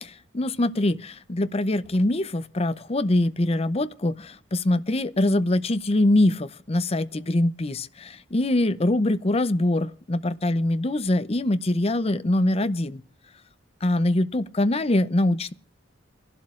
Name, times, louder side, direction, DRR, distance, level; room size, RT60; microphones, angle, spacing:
voice 1, 0.0-13.0 13.8-15.5, left 1 dB, 30° left, 0.6 m, -23 dB
30.0 x 12.0 x 2.5 m
head